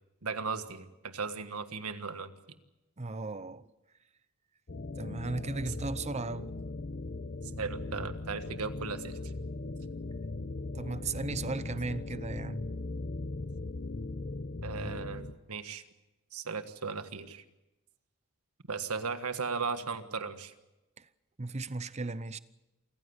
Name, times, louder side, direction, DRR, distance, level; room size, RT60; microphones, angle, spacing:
voice 1, 0.2-2.3 7.6-9.3 14.6-15.8 16.3-17.4 18.7-20.5, right 5 dB, 85° right, 1.6 m, -36 dB
voice 2, 3.0-3.7 5.0-6.5 10.7-12.7 21.0-21.1 21.4-22.4, right 3 dB, 30° right, 0.8 m, -36 dB
sound 1, 4.7-15.3, left 2 dB, 50° left, 0.9 m, -39 dB
28.0 x 15.0 x 8.0 m
head